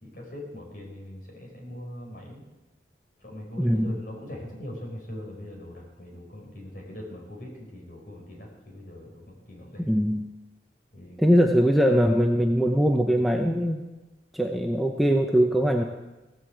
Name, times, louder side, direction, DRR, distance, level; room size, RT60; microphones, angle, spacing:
voice 1, 0.0-2.4 3.2-9.9 10.9-11.2, left 1 dB, 50° left, 0 dB, 4.6 m, -41 dB
voice 2, 3.6-4.0 9.8-10.3 11.2-13.8 14.3-15.8, equal, ahead, 2 dB, 0.7 m, -22 dB
16.5 x 8.2 x 7.8 m, 1.1 s
head